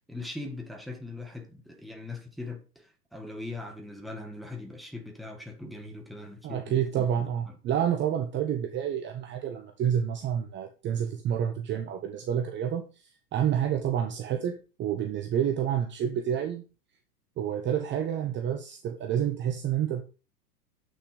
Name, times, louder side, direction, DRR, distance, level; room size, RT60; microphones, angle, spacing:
voice 1, 0.1-7.1 7.5-7.6, left 2 dB, ahead, 1.8 m, -40 dB
voice 2, 6.4-16.6 17.4-20.0, right 9 dB, 25° right, 1.0 m, -29 dB
8.4 x 6.4 x 5.1 m
hypercardioid pair, 105°, 48 cm